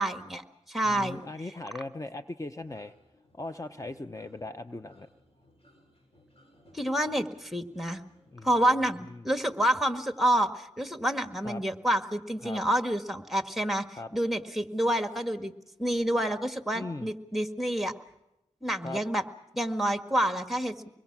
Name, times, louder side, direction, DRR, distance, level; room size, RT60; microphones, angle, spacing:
voice 1, 0.0-1.2 6.7-8.0 8.4-15.5 15.8-17.9 18.6-19.2 19.6-20.9, right 1 dB, ahead, 7 dB, 1.8 m, -28 dB
voice 2, 0.8-2.9 3.3-5.1 8.3-8.5 9.1-9.2 11.4-11.6 12.4-12.6 14.0-14.1 16.7-17.1 18.8-19.0, left 2 dB, 25° left, 8 dB, 0.8 m, -39 dB
sound 1, 2.5-8.5, equal, 55° left, 6.8 m, -60 dB
25.0 x 22.0 x 6.1 m, 0.90 s
cardioid pair, 45°, 12 cm